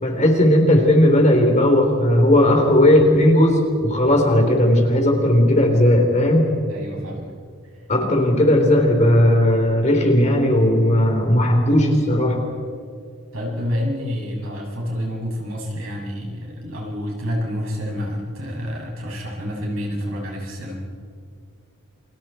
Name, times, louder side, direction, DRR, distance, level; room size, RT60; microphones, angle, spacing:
voice 1, 0.0-6.5 7.9-12.4, left 1 dB, 35° left, 2 dB, 3.8 m, -16 dB
voice 2, 6.7-7.3 13.3-20.9, equal, 70° right, -2 dB, 7.2 m, -28 dB
30.0 x 26.0 x 4.5 m, 2.2 s
head